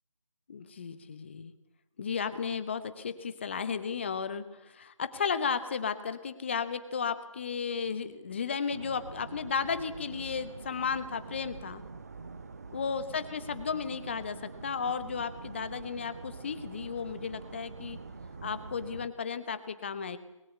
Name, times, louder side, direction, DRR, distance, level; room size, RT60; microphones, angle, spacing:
voice 1, 0.5-1.5 2.0-11.8 12.7-18.0 18.4-20.2, left 6 dB, 20° left, 12 dB, 1.2 m, -34 dB
sound 1, 8.7-19.1, right 4 dB, 30° right, 0.8 m, -45 dB
26.0 x 21.5 x 8.4 m, 0.92 s
figure-of-eight pair, 165°, 17 cm